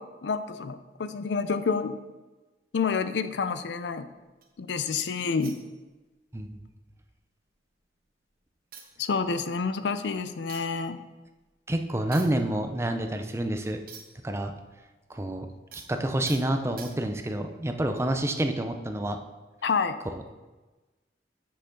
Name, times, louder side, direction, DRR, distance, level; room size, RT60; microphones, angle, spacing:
voice 1, 0.0-2.0 2.7-4.1 4.6-5.6 9.0-11.0 19.6-20.0, left 5 dB, 80° left, 11 dB, 0.5 m, -28 dB
sound 1, 2.8-4.7 5.4-6.3 6.5-6.8 7.1-8.0 8.3-8.4 8.7-14.3 14.6-17.3 17.9-18.2, right 6 dB, 55° right, 1.0 m, -50 dB
voice 2, 11.7-13.8 14.2-14.5 15.1-15.5 15.9-19.2 20.1-20.2, right 1 dB, 15° right, 6 dB, 0.5 m, -28 dB
7.9 x 6.4 x 3.8 m, 1.2 s
head